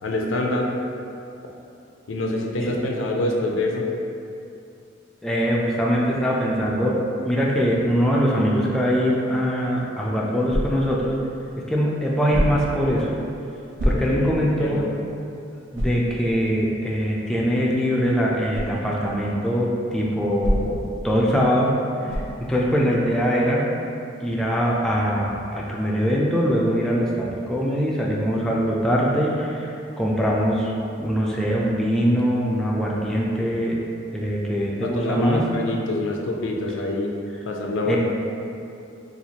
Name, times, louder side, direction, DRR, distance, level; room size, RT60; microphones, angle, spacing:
voice 1, 0.0-0.7 2.1-3.8 13.9-14.9 34.8-37.1 37.5-38.0, left 2 dB, 80° left, 0 dB, 0.4 m, -26 dB
voice 2, 5.2-7.0 7.2-11.2 11.7-13.1 13.8-14.8 15.7-21.7 22.0-22.2 22.5-23.7 24.2-33.8 34.1-35.4 37.8-38.0, equal, 5° left, -4 dB, 0.3 m, -22 dB
sound 1, 10.5-11.0 12.3-12.8 13.8-14.4 14.9-15.0 15.7-16.1 18.5-18.8 20.4-20.9 22.1-22.4, equal, 75° right, 0.6 m, -25 dB
4.2 x 2.4 x 2.8 m, 2.7 s
head